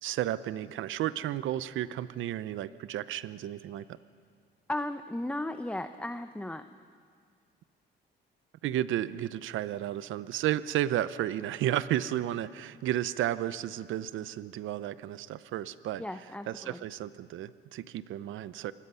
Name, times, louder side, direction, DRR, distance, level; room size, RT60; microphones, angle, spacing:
voice 1, 0.0-4.0 8.6-18.7, right 12 dB, 80° right, 15 dB, 0.7 m, -33 dB
voice 2, 4.7-6.6 16.0-16.8, left 1 dB, 5° left, 8 dB, 0.8 m, -35 dB
27.5 x 21.0 x 5.6 m, 2.1 s
cardioid pair, 90°, 20 cm